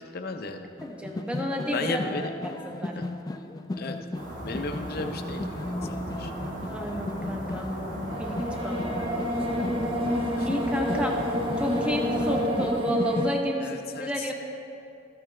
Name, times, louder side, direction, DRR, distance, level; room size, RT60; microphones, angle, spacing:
voice 1, 0.1-0.7 1.7-2.3 3.0-3.1 3.7-4.0 4.4-6.3 9.8-10.5 13.6-14.3, left 3 dB, 55° left, 6 dB, 0.6 m, -35 dB
sound 1, 0.8-13.4, left 2 dB, 20° left, 0.3 m, -37 dB
voice 2, 0.8-2.0 2.6-3.0 6.7-9.1 10.4-11.2 11.6-14.3, equal, 5° right, 1 dB, 0.9 m, -31 dB
sound 2, 4.1-12.9, equal, 75° right, 2.2 m, -36 dB
sound 3, 8.1-13.3, equal, 30° right, 1.0 m, -28 dB
13.5 x 8.7 x 3.3 m, 2.6 s
head